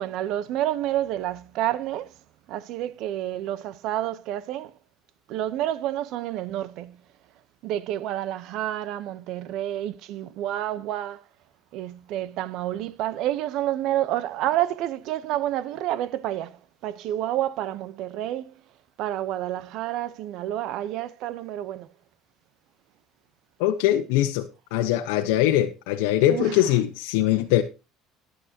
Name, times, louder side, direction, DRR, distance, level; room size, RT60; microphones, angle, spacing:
voice 1, 0.0-2.1 2.5-4.7 5.3-7.0 7.6-11.2 11.7-18.5 19.0-21.9 26.3-26.6, right 13 dB, 60° right, 0.9 m, -29 dB
voice 2, 23.6-27.6, left 13 dB, 85° left, 1.1 m, -22 dB
14.5 x 10.5 x 2.9 m
cardioid pair, 135°, 0 cm